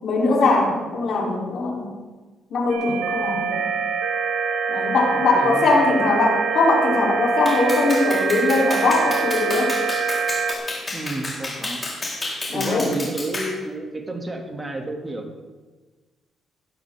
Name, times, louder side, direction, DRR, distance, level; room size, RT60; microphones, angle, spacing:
voice 1, 0.0-1.9 2.5-3.6 4.7-9.7 12.5-12.9, left 3 dB, 65° left, -2 dB, 3.6 m, -21 dB
sound 1, 2.7-10.5, right 5 dB, 90° right, 1.5 m, -24 dB
voice 2, 5.1-5.8 10.9-11.9 12.5-15.4, right 2 dB, 20° right, 2 dB, 2.4 m, -31 dB
Clapping, 7.5-13.6, left 2 dB, 25° left, 3.9 m, -30 dB
16.5 x 11.5 x 3.7 m, 1.3 s
cardioid pair, 90°, 0 cm